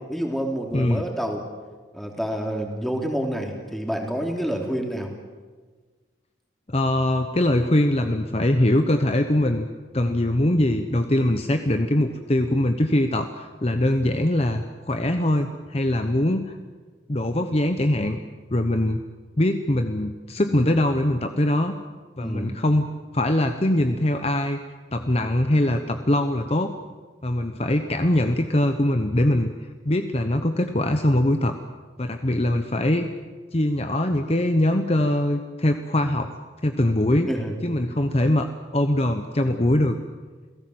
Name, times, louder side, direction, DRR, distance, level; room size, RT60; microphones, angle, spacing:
voice 1, 0.1-1.4 1.9-5.1 22.2-22.6 37.3-37.6, equal, ahead, 1 dB, 3.1 m, -28 dB
voice 2, 0.7-1.0 6.7-9.7 9.9-16.6 17.1-18.2 18.5-19.0 19.4-21.8 22.2-24.6 24.9-26.7 27.2-29.5 29.8-31.6 32.0-33.1 33.5-36.3 36.6-37.3 37.6-40.0, left 1 dB, 35° left, 7 dB, 1.0 m, -22 dB
28.5 x 17.0 x 7.9 m, 1.4 s
head